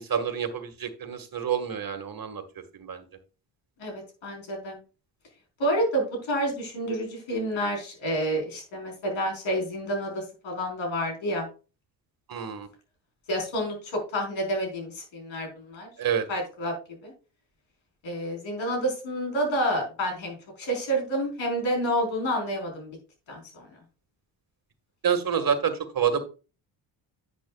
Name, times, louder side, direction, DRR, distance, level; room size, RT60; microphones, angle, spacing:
voice 1, 0.0-3.0 12.3-12.7 16.0-16.3 25.0-26.2, right 7 dB, 45° right, 9 dB, 1.9 m, -28 dB
voice 2, 3.8-4.8 5.6-11.5 13.3-15.9 16.3-16.7 17.0-17.1 18.0-22.9 23.3-23.7, equal, 65° left, 1 dB, 4.7 m, -29 dB
10.5 x 7.9 x 2.4 m, 0.33 s
supercardioid pair, 60°, 50 cm